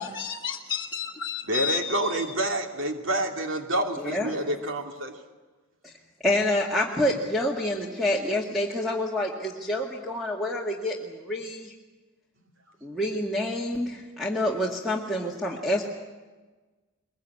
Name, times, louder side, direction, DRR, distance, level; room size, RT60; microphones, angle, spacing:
voice 1, 0.0-2.3, left 8 dB, 20° left, -3 dB, 1.6 m, -32 dB
voice 2, 1.4-5.1, right 1 dB, 65° right, 3 dB, 3.0 m, -28 dB
voice 3, 6.2-11.7 12.8-15.9, left 1 dB, ahead, -3 dB, 2.1 m, -27 dB
23.0 x 22.0 x 8.6 m, 1.3 s
head